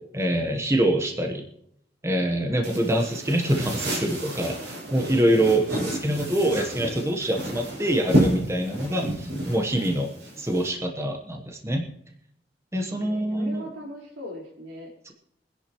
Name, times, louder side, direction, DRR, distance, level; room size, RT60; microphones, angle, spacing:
voice 1, 0.1-1.4 2.0-10.1 10.4-11.9 12.7-13.6 15.1-15.2, right 1 dB, 15° right, 3 dB, 1.1 m, -25 dB
sound 1, 2.6-10.7, right 1 dB, 70° right, 6.5 m, -30 dB
voice 2, 12.9-14.9, equal, 90° right, -2 dB, 4.2 m, -41 dB
23.5 x 10.5 x 3.0 m, 0.72 s
head